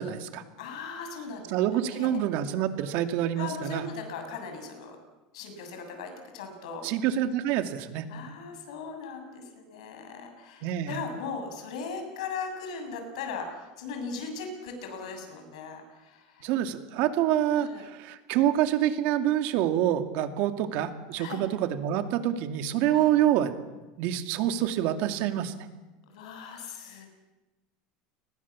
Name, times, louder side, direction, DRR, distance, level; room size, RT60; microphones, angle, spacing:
voice 1, 0.0-0.4 1.5-3.9 6.8-8.1 10.6-11.0 16.4-23.6 24.0-25.5, right 11 dB, 60° right, 8 dB, 2.4 m, -27 dB
voice 2, 0.6-2.1 3.4-5.0 5.3-6.8 8.1-16.5 17.5-17.9 21.2-21.4 22.9-23.1 26.1-27.1, left 5 dB, 90° left, 5 dB, 7.4 m, -38 dB
29.5 x 21.0 x 7.4 m, 1.1 s
supercardioid pair, 140°, 3 cm